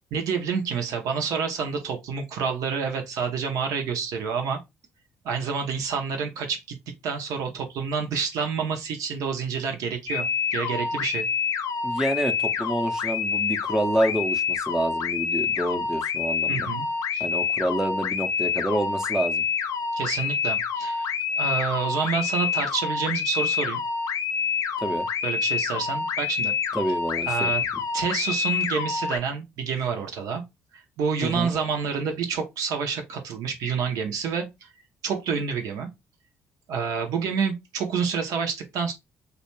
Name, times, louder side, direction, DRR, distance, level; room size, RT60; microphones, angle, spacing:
voice 1, 0.1-4.6 5.2-6.8 7.0-11.3 16.5-16.9 17.1-17.3 19.9-23.8 25.2-26.5 27.3-27.6 27.9-30.4 30.7-34.7 35.0-35.9 36.7-38.9, right 6 dB, 65° right, 0.6 m, -28 dB
sound 1, 10.1-29.2, left 6 dB, 60° left, 0.5 m, -27 dB
voice 2, 11.8-16.7 17.2-19.4 24.8-25.1 26.7-27.5 31.2-31.5, right 1 dB, 10° right, 0.6 m, -28 dB
2.4 x 2.2 x 3.0 m
hypercardioid pair, 50°, 6 cm